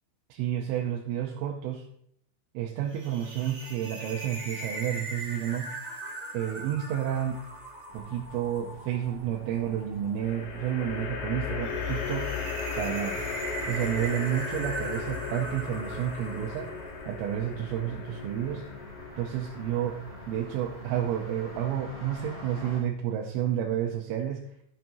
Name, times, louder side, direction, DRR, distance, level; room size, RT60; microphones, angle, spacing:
voice 1, 0.3-1.9 2.5-5.7 6.3-7.5 7.9-12.3 12.8-13.2 13.7-16.7 17.1-18.7 19.2-24.5, right 10 dB, 85° right, 1 dB, 3.2 m, -30 dB
sound 1, 2.9-17.2, right 2 dB, 40° right, 2.2 m, -41 dB
sound 2, 7.1-7.7 10.2-21.6, left 5 dB, 80° left, 4.0 m, -37 dB
Street Noise, 7.9-22.8, equal, 10° right, 2.9 m, -47 dB
15.0 x 6.9 x 2.7 m, 0.71 s
omnidirectional pair, 5.7 m